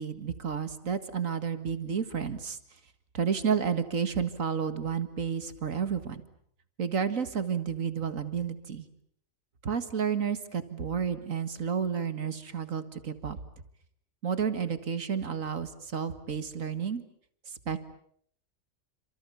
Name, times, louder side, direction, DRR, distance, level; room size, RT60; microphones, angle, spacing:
voice 1, 0.0-2.6 3.1-6.2 6.8-8.9 9.6-13.4 14.2-17.0 17.5-17.8, right 7 dB, 80° right, 11 dB, 2.2 m, -31 dB
28.5 x 26.5 x 7.1 m, 0.65 s
omnidirectional pair, 1.4 m